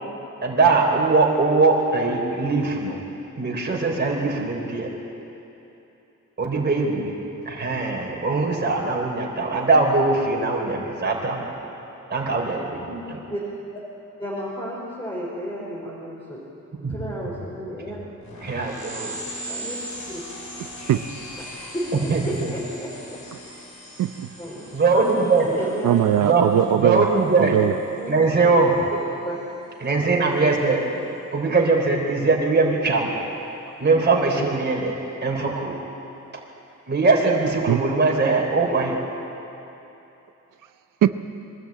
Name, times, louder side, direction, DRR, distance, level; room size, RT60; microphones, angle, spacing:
voice 1, 0.4-3.0 3.4-4.9 6.4-7.1 7.4-11.5 12.1-13.2 16.8-16.9 18.4-19.2 22.1-22.5 24.7-25.5 26.2-26.4 26.8-27.6 28.1-28.7 29.8-30.8 31.3-33.1 33.8-35.8 36.9-39.0, right 3 dB, 35° right, -2 dB, 4.0 m, -21 dB
voice 2, 12.8-13.4 14.2-16.4 16.9-18.0 19.5-19.8 20.1-20.2 21.5-23.2 24.4-26.0 28.0-28.1 28.4-28.6 28.9-29.3 30.9-31.0, equal, 15° left, -7 dB, 4.9 m, -33 dB
sound 1, 18.2-28.4, equal, 65° left, 6.5 m, -39 dB
voice 3, 20.6-21.0 24.0-24.3 25.8-27.1 27.4-27.7 37.7-37.8 41.0-41.1, right 11 dB, 75° right, 11 dB, 0.7 m, -20 dB
23.0 x 13.0 x 9.0 m, 3.0 s
cardioid pair, 85°, 31 cm